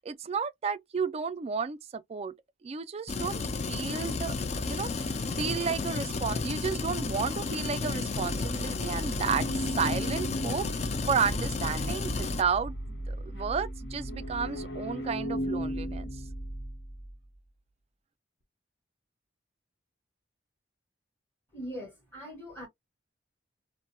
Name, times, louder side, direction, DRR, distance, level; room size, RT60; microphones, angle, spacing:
voice 1, 0.0-2.4 2.6-3.4 3.7-4.3 4.6-9.5 9.8-12.8 13.1-16.1, right 6 dB, 35° right, 0.3 m, -32 dB
sound 1, 3.1-12.4, left 3 dB, 35° left, 0.4 m, -32 dB
sound 2, 8.1-17.2, equal, 60° left, 0.9 m, -37 dB
voice 2, 21.5-22.7, equal, 10° left, 2.1 m, -41 dB
4.2 x 2.1 x 2.2 m
head